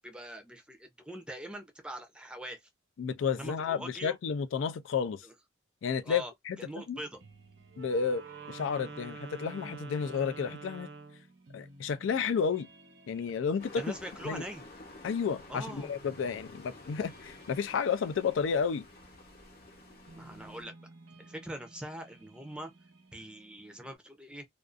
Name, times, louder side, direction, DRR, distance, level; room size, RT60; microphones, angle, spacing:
voice 1, 0.0-2.7 3.3-4.2 5.2-5.3 6.0-6.3 6.6-7.2 13.8-14.6 15.5-15.9 20.1-20.7 21.2-22.7 23.1-24.4, right 1 dB, 5° right, 0.5 m, -42 dB
voice 2, 3.0-5.2 5.8-7.0 7.8-10.9 11.5-12.7 13.1-13.8 14.3-14.4 15.0-18.9, left 6 dB, 90° left, 0.4 m, -31 dB
sound 1, 7.0-24.0, right 3 dB, 80° right, 0.9 m, -57 dB
Wind instrument woodwind instrument, 7.7-11.3, right 4 dB, 55° right, 0.5 m, -46 dB
sound 2, 13.6-20.6, left 2 dB, 55° left, 0.8 m, -51 dB
2.4 x 2.4 x 2.4 m
head